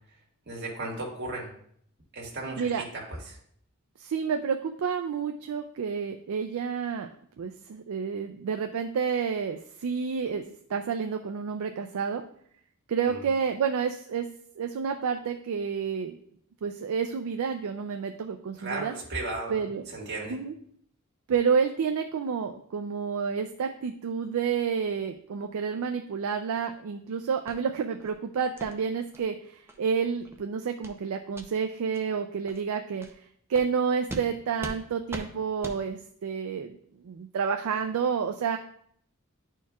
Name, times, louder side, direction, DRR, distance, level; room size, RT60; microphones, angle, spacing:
voice 1, 0.5-1.5 2.1-2.7 3.3-3.4 13.1-13.2 18.6-19.6 19.9-20.3, right 2 dB, 50° right, -2 dB, 1.7 m, -35 dB
voice 2, 4.0-7.1 7.4-12.2 12.9-14.3 14.6-16.2 16.6-18.9 19.5-19.8 20.3-20.6 21.3-33.1 33.5-36.8 37.0-38.6, right 6 dB, 70° right, 6 dB, 0.4 m, -29 dB
sound 1, 27.5-27.6 28.0-28.2 28.6-28.7 29.1-29.2 29.7-29.8 30.2-30.4 30.8-31.0 31.3-31.5 31.9-32.0 32.5-32.6 33.0-33.1 33.5-33.7 34.1-34.3 34.6-34.8 35.1-35.3 35.6-35.8, right 1 dB, 10° right, 0.6 m, -40 dB
10.0 x 4.5 x 2.3 m, 0.65 s
head